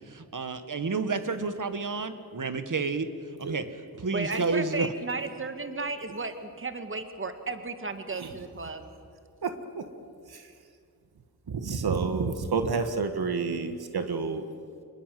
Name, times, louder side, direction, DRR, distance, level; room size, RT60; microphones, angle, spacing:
voice 1, 0.1-3.1 3.5-3.6 4.0-4.9, right 4 dB, 55° right, 9 dB, 1.8 m, -30 dB
voice 2, 4.1-8.9, right 3 dB, 30° right, 8 dB, 1.9 m, -34 dB
voice 3, 9.4-9.8 10.2-10.6 11.5-14.5, right 4 dB, 75° right, 7 dB, 1.7 m, -29 dB
26.0 x 20.5 x 7.8 m, 2.3 s
wide cardioid pair, 75°, 38 cm